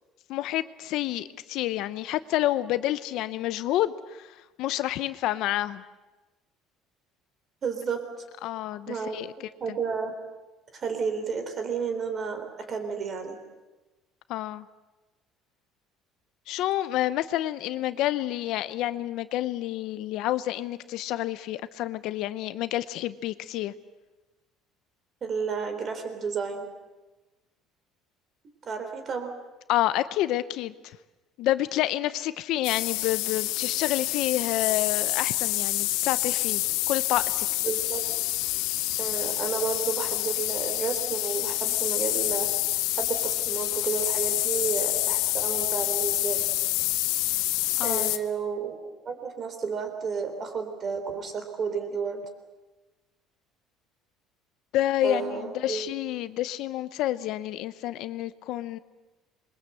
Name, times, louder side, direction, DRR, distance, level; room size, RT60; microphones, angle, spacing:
voice 1, 0.3-5.8 8.4-9.3 9.7-9.8 14.3-14.7 16.5-23.7 29.7-31.0 31.4-37.5 47.8-48.1 54.7-58.8, left 14 dB, 55° left, 14 dB, 0.8 m, -29 dB
voice 2, 7.6-8.0 8.9-9.2 9.6-10.1 10.7-13.4 25.2-26.7 28.7-29.3 37.6-38.0 39.0-42.5 43.0-46.5 47.8-48.8 49.1-52.2 55.0-55.9, right 5 dB, 30° right, 7 dB, 3.5 m, -31 dB
sound 1, 32.6-48.2, left 17 dB, 85° left, 1.2 m, -27 dB
26.5 x 22.5 x 7.9 m, 1.1 s
cardioid pair, 175°, 0 cm